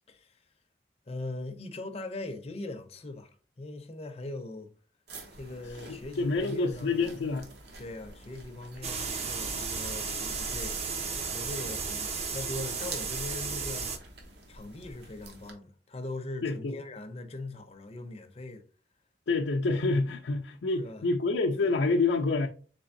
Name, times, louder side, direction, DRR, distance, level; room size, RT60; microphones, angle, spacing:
voice 1, 0.1-0.4 1.1-4.7 5.3-7.2 7.8-11.0 11.3-13.9 14.5-18.6 20.8-21.1, left 2 dB, 35° left, 0.5 m, -40 dB
sound 1, 5.1-15.5, right 2 dB, 65° right, 0.8 m, -48 dB
voice 2, 5.9-7.4 16.4-16.8 19.3-22.5, left 3 dB, 80° left, 0.5 m, -27 dB
sound 2, 8.8-14.0, right 5 dB, 35° right, 0.5 m, -34 dB
3.7 x 3.4 x 2.6 m
head